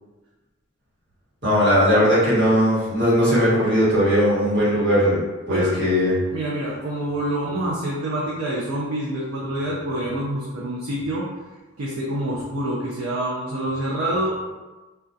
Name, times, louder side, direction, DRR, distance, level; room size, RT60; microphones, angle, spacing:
voice 1, 1.4-5.2 5.5-6.1, equal, 55° right, -9 dB, 1.1 m, -18 dB
voice 2, 6.3-11.3 11.8-14.4, right 1 dB, 75° right, -4 dB, 0.4 m, -26 dB
2.2 x 2.1 x 2.5 m, 1.2 s
head